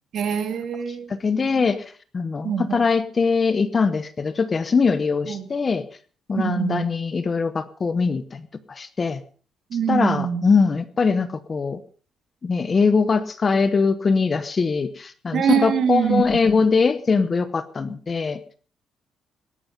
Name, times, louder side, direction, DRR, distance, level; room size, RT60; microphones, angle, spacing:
voice 1, 0.1-1.1 1.4-1.7 2.4-2.8 5.3-5.5 6.4-6.9 9.7-10.5 15.3-16.5, right 8 dB, 60° right, 2.4 m, -24 dB
voice 2, 1.1-1.8 2.1-5.8 6.3-8.4 8.7-9.2 9.9-11.8 12.4-18.4, left 4 dB, 30° left, 1.0 m, -22 dB
19.0 x 11.5 x 5.3 m
cardioid pair, 135°, 0 cm